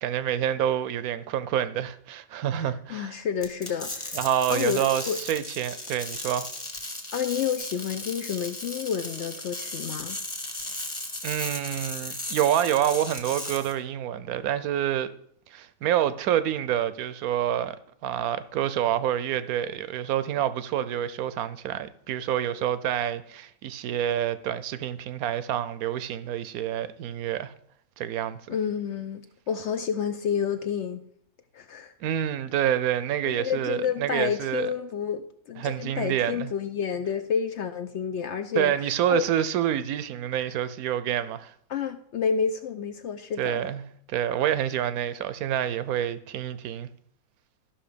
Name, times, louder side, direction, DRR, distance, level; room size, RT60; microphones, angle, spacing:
voice 1, 0.0-3.1 4.1-6.5 11.2-15.1 15.5-17.8 18.0-27.5 28.0-28.4 32.0-34.7 35.6-36.5 38.5-41.5 43.4-43.8 44.1-46.9, right 10 dB, 75° right, 1.0 m, -27 dB
voice 2, 2.6-4.2 4.5-5.2 7.1-10.2 28.5-31.0 31.5-31.9 33.3-39.3 41.7-43.6, left 7 dB, 65° left, 0.7 m, -30 dB
sound 1, 3.4-13.7, left 1 dB, 20° left, 1.5 m, -36 dB
13.0 x 5.7 x 5.0 m
omnidirectional pair, 1.6 m